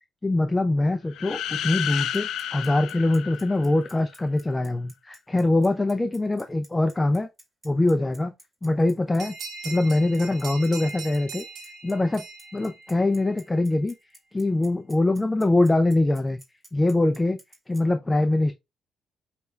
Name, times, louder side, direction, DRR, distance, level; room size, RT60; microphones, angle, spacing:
voice 1, 0.2-7.3 7.6-8.3 8.6-9.3 9.6-11.4 11.8-12.2 12.5-13.9 14.3-16.4 16.7-17.4 17.7-18.5, left 2 dB, 15° left, 0.5 m, -23 dB
sound 1, 1.1-4.0, left 10 dB, 80° left, 0.4 m, -31 dB
Bicycle, 1.9-17.8, right 1 dB, 15° right, 2.2 m, -51 dB
sound 2, 9.2-13.4, right 4 dB, 65° right, 1.5 m, -40 dB
5.7 x 3.2 x 2.3 m
cardioid pair, 90°, 0 cm